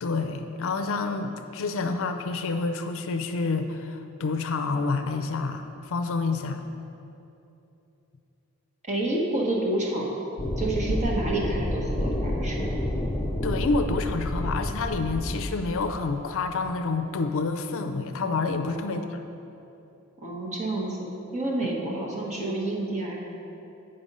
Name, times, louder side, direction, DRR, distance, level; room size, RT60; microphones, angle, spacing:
voice 1, 0.0-6.6 13.4-19.2 21.6-21.7, left 4 dB, 60° left, 7 dB, 0.5 m, -28 dB
voice 2, 8.8-10.1 10.6-12.7 18.7-19.0 20.2-21.0 21.3-23.2, right 2 dB, 30° right, -3 dB, 1.3 m, -29 dB
sound 1, 10.4-16.7, left 1 dB, 15° left, 0.5 m, -29 dB
8.7 x 5.4 x 5.4 m, 2.9 s
head